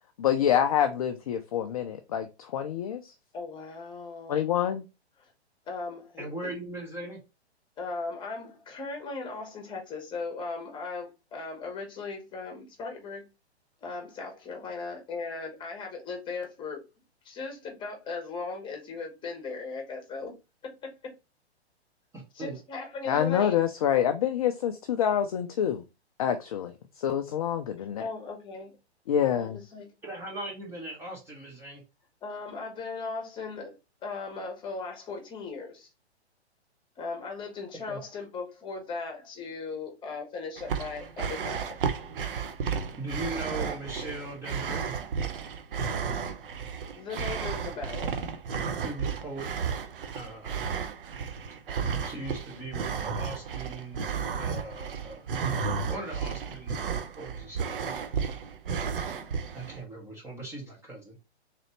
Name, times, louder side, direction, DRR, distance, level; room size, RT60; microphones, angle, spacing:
voice 1, 0.2-3.1 4.3-4.8 23.1-25.8 26.2-28.0 29.1-29.6, left 9 dB, 35° left, 0.4 m, -27 dB
voice 2, 3.3-4.5 5.2-5.3 5.7-6.5 7.8-13.2 13.8-16.8 17.2-20.3 20.8-20.9 22.3-23.6 28.0-28.7 29.4-29.9 32.2-33.8 34.0-35.9 37.0-41.8 47.0-48.1, left 4 dB, 15° left, 1.0 m, -38 dB
voice 3, 6.2-7.2 22.1-22.6 30.0-31.8 37.9-38.0 43.0-44.9 48.8-49.5 50.1-50.7 52.0-54.0 54.3-55.3 55.9-56.8 57.2-58.2 59.5-61.2, right 2 dB, 10° right, 0.7 m, -39 dB
sound 1, 40.6-59.8, right 6 dB, 55° right, 0.7 m, -33 dB
3.8 x 3.3 x 3.0 m
hypercardioid pair, 130°, 33 cm